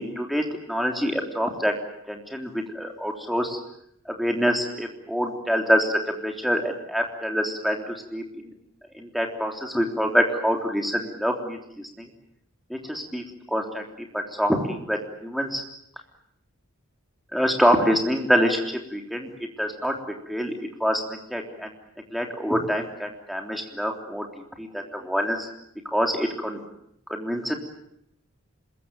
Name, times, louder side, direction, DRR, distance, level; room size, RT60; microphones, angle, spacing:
voice 1, 0.0-1.7 2.1-3.6 4.1-8.5 8.9-12.1 12.7-15.6 17.3-18.6 18.9-19.3 19.6-20.0 20.3-20.5 20.8-21.7 22.1-24.3 24.6-25.5 25.9-26.6 27.1-27.5, equal, ahead, 2 dB, 3.4 m, -26 dB
26.0 x 22.0 x 9.0 m, 0.74 s
head